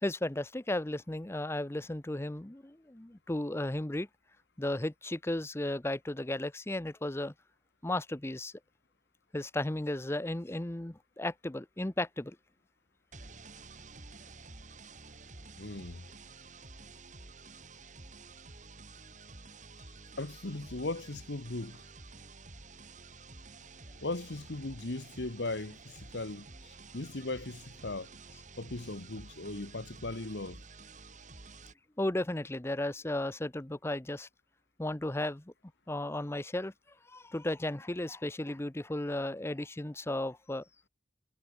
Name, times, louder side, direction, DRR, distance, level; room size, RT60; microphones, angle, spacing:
voice 1, 0.0-4.1 4.6-7.3 7.8-8.5 9.3-12.4 32.0-34.3 34.8-35.5 35.9-36.7 37.1-40.6, left 1 dB, 15° left, 0.7 m, -34 dB
sound 1, 13.1-31.7, right 3 dB, 40° right, 2.7 m, -51 dB
voice 2, 15.6-16.1 20.2-21.9 24.0-28.1 28.6-30.6, left 2 dB, 70° left, 1.4 m, -38 dB
head